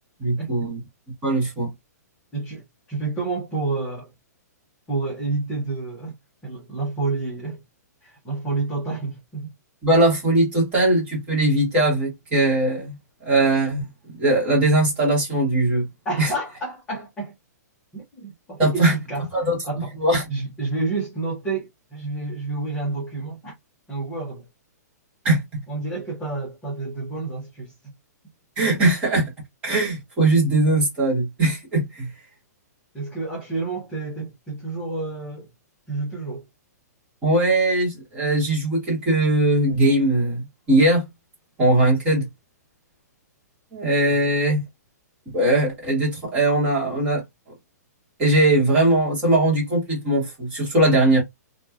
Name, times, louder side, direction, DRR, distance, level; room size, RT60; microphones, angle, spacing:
voice 1, 0.2-0.8 1.2-1.7 9.8-12.9 13.2-15.9 16.2-16.3 18.6-18.9 19.3-19.6 20.0-20.3 25.2-25.6 28.6-29.3 29.6-32.1 37.2-40.4 40.7-41.0 41.6-42.3 43.7-44.6 45.3-47.2 48.2-51.2, right 2 dB, 10° right, 1.2 m, -20 dB
voice 2, 2.3-4.1 4.9-7.6 8.0-9.5 16.0-17.3 17.9-19.3 19.7-20.0 20.3-23.5 23.9-24.5 25.7-27.9 32.9-35.5 35.9-36.4 44.1-44.3, right 3 dB, 5° left, 0.7 m, -29 dB
3.0 x 2.2 x 2.3 m
hypercardioid pair, 180°, 9 cm